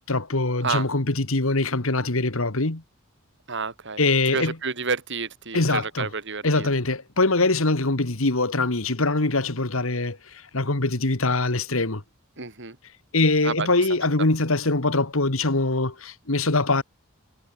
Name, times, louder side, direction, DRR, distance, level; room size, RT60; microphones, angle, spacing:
voice 1, 0.0-2.8 4.0-4.5 5.5-6.1 6.4-12.0 13.1-16.8, left 2 dB, 70° left, 2.1 m, -23 dB
voice 2, 3.5-4.0 4.3-6.7 12.4-12.8 13.4-13.7, right 4 dB, 60° right, 4.6 m, -29 dB
head